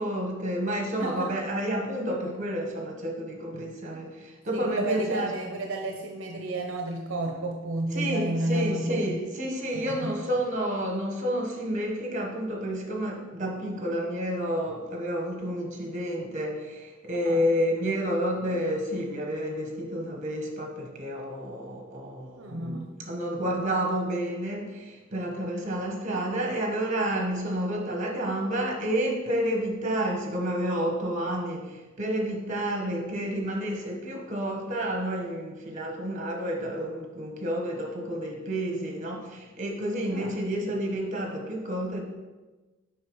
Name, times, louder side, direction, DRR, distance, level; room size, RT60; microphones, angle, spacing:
voice 1, 0.0-5.3 7.9-42.0, equal, 40° right, 1 dB, 1.2 m, -30 dB
voice 2, 4.5-9.2 9.7-10.1 17.2-17.5 22.4-22.9 40.1-40.3, right 1 dB, 70° right, 2 dB, 0.6 m, -31 dB
7.5 x 5.3 x 3.1 m, 1.2 s
head